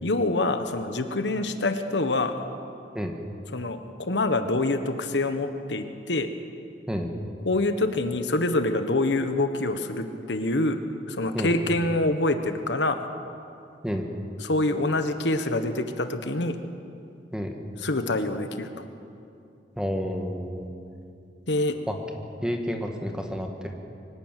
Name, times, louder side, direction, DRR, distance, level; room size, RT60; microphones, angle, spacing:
voice 1, 0.0-2.3 3.5-6.3 7.4-10.8 11.1-13.1 14.4-16.6 17.8-18.8 21.5-21.8, left 2 dB, 85° left, 8 dB, 1.3 m, -26 dB
voice 2, 19.7-20.7 21.9-22.0 22.4-23.7, equal, 5° right, 3 dB, 1.7 m, -30 dB
24.0 x 12.5 x 9.2 m, 2.5 s
head